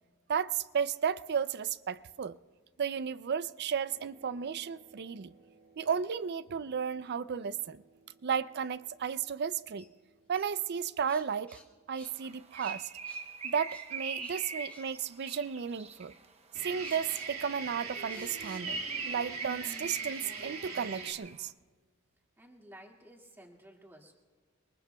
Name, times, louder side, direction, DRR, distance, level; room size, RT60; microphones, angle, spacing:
voice 1, 0.3-2.4 2.8-5.3 5.8-7.8 8.2-9.9 10.3-11.6 11.9-12.9 13.4-16.1 16.6-21.5, right 7 dB, 50° right, 0.4 m, -34 dB
sound 1, 3.9-9.5 16.5-21.1, right 5 dB, 90° right, 2.6 m, -44 dB
sound 2, 9.8-9.9 10.3-11.7 11.9-12.2 12.6-13.3 13.7-13.9 14.2-14.9 15.2-15.4 16.8-17.3 18.1-18.7 19.6-20.9, left 1 dB, 5° left, 1.6 m, -55 dB
Bird, 12.2-16.3 17.9-21.4, right 5 dB, 30° right, 0.9 m, -42 dB
voice 2, 22.4-24.2, right 1 dB, 10° right, 2.0 m, -54 dB
28.0 x 22.5 x 2.3 m
head